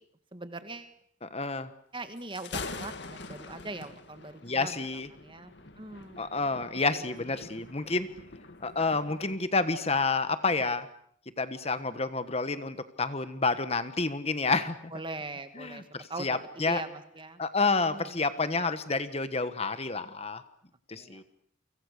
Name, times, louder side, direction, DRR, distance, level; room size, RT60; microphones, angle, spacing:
voice 1, 0.3-0.9 1.9-4.8 5.1-6.3 6.9-7.0 7.4-7.5 7.8-7.9 14.9-17.4 17.8-18.1 20.9-21.2, right 2 dB, 25° right, 9 dB, 1.9 m, -41 dB
voice 2, 1.2-1.7 4.4-5.1 6.2-8.1 8.6-10.9 11.4-14.8 15.6-16.8 17.4-20.4 20.9-21.2, left 3 dB, 30° left, 11 dB, 1.3 m, -29 dB
Thunder, 2.2-9.4, left 3 dB, 60° left, 2.2 m, -44 dB
29.5 x 25.5 x 6.7 m, 0.64 s
head